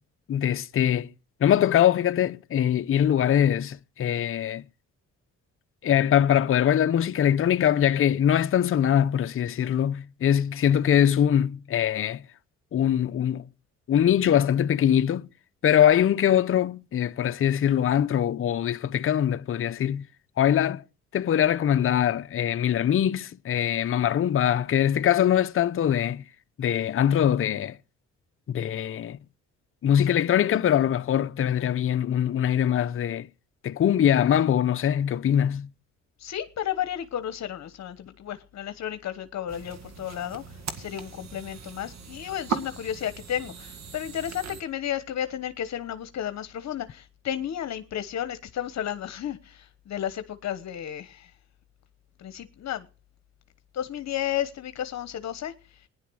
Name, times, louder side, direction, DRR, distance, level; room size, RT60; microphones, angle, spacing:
voice 1, 0.3-1.1 1.4-4.6 5.8-12.2 12.7-13.5 13.9-15.3 15.6-20.1 20.4-20.8 21.1-26.2 26.6-27.8 28.5-29.2 29.8-33.3 33.6-35.7, left 10 dB, 45° left, 0.7 m, -22 dB
voice 2, 36.2-40.4 40.8-51.3 52.2-52.9 53.7-55.5, left 10 dB, 60° left, 1.1 m, -33 dB
sound 1, 39.5-44.6, right 5 dB, 60° right, 1.9 m, -38 dB
15.5 x 10.5 x 6.3 m
cardioid pair, 90°, 30 cm